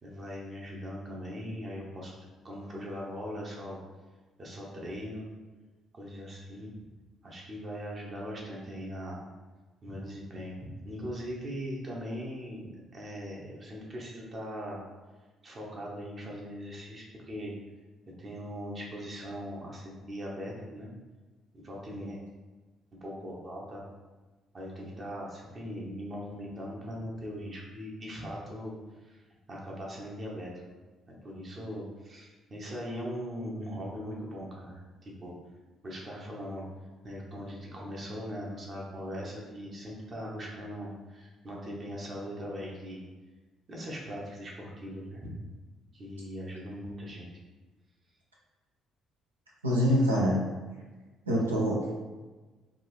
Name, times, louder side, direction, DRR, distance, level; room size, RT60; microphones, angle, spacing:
voice 1, 0.0-2.1 2.4-3.8 4.4-5.3 5.9-6.7 7.2-9.2 9.8-10.6 10.8-14.8 15.4-17.5 18.2-20.9 21.5-22.2 23.0-23.9 24.5-28.8 29.0-29.2 29.5-30.5 31.1-35.3 35.8-36.6 37.0-43.0 43.7-45.2 45.9-47.3, equal, 35° right, -3 dB, 0.9 m, -40 dB
voice 2, 49.6-50.4 51.3-51.9, equal, 80° right, -4 dB, 0.6 m, -25 dB
3.6 x 2.6 x 3.0 m, 1.3 s
figure-of-eight pair, 45°, 0 cm